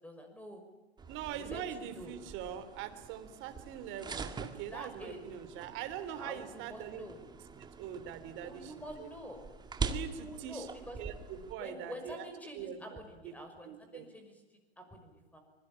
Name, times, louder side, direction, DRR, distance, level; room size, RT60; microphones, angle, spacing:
voice 1, 0.0-0.6 1.3-2.1 4.7-5.2 6.2-7.2 8.4-9.4 10.2-11.0 11.6-14.3 14.8-15.4, equal, 5° left, 6 dB, 6.1 m, -47 dB
sound 1, 1.0-11.5, right 4 dB, 15° right, 1.9 m, -44 dB
voice 2, 1.1-7.0 7.6-8.7 9.0-9.1 9.8-10.7 11.0-12.2 12.5-13.3 13.6-14.1, right 10 dB, 35° right, 9 dB, 3.3 m, -43 dB
25.0 x 22.5 x 8.9 m, 1.1 s
hypercardioid pair, 115°, 32 cm